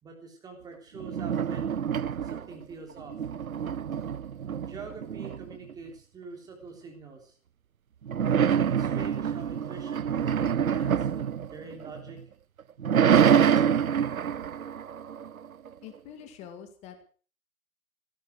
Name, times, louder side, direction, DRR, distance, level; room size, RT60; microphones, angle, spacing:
voice 1, 0.0-1.7 2.2-3.2 4.6-7.3 8.4-12.2, right 4 dB, 10° right, 2 dB, 3.4 m, -45 dB
sound 1, 1.0-2.6 3.0-5.7 8.1-12.2 12.6-15.7, right 8 dB, 75° right, 0.7 m, -26 dB
voice 2, 15.8-17.0, left 9 dB, 15° left, 8 dB, 2.1 m, -45 dB
16.0 x 13.5 x 6.4 m, 0.41 s
figure-of-eight pair, 135°, 42 cm